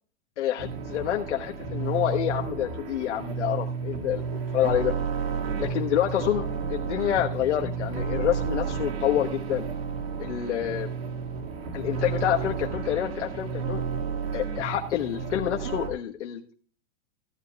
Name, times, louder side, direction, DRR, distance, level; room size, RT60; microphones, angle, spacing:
voice 1, 0.4-4.2 4.5-4.9 5.6-9.7 10.2-10.9 11.7-13.8 14.3-16.5, left 11 dB, 75° left, 2 dB, 1.3 m, -27 dB
sound 1, 0.6-15.9, right 5 dB, 55° right, 2.1 m, -32 dB
15.0 x 10.0 x 2.3 m, 0.42 s
supercardioid pair, 180°, 35 cm